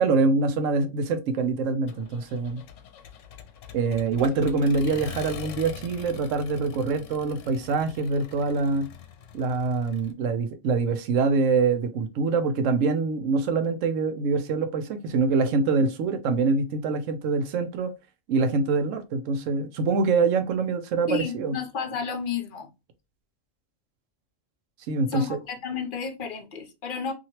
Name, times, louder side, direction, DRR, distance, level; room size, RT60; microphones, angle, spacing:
voice 1, 0.0-2.6 3.7-8.9 9.3-17.9 18.3-21.6 24.9-25.4, right 4 dB, 85° right, 1.0 m, -25 dB
Accelerating revving vroom, 1.9-10.1, left 7 dB, 75° left, 0.9 m, -43 dB
voice 2, 21.1-22.7 25.1-27.1, left 5 dB, 55° left, 0.7 m, -32 dB
2.8 x 2.8 x 2.9 m
omnidirectional pair, 1.3 m